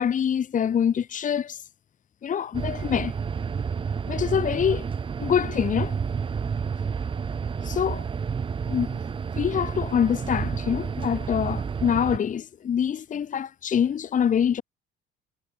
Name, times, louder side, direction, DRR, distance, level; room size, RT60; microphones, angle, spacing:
voice 1, 0.0-1.6 2.2-3.1 4.1-4.9 5.2-6.0 7.6-8.0 8.7-9.0 9.3-14.6, left 8 dB, 40° left, 1.4 m, -25 dB
sound 1, 2.5-12.2, right 6 dB, 25° right, 0.6 m, -30 dB
cardioid pair, 110°, 21 cm